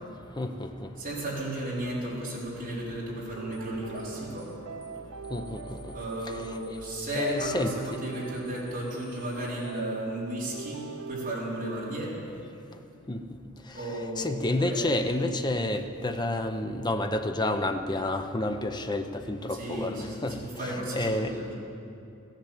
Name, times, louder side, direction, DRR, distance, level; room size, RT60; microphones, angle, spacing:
voice 1, 0.4-0.9 5.3-5.9 6.4-6.7 7.2-8.0 13.1-13.2 13.8-20.4 20.6-21.3, left 1 dB, 20° left, 7 dB, 0.7 m, -30 dB
voice 2, 1.0-4.5 5.9-12.2 13.7-15.2 19.5-21.5, right 1 dB, 40° right, -6 dB, 4.1 m, -34 dB
sound 1, 3.3-11.4, right 5 dB, 85° right, 0.5 m, -43 dB
sound 2, 3.5-3.7 3.9-4.1 4.4-4.5 4.8-5.0 5.2-9.7, left 4 dB, 55° left, 3.2 m, -56 dB
15.0 x 10.5 x 7.9 m, 2.7 s
head